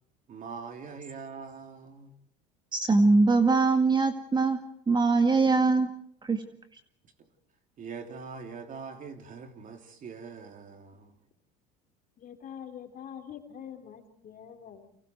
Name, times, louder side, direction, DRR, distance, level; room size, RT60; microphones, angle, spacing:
voice 1, 0.3-2.1 7.2-7.3 7.8-11.1, right 5 dB, 40° right, 3.1 m, -43 dB
voice 2, 2.7-4.6 4.9-5.9 6.2-6.4, right 3 dB, 20° right, 2.0 m, -22 dB
voice 3, 12.2-15.0, left 8 dB, 45° left, 3.5 m, -45 dB
30.0 x 25.0 x 4.6 m
supercardioid pair, 90°, 20 cm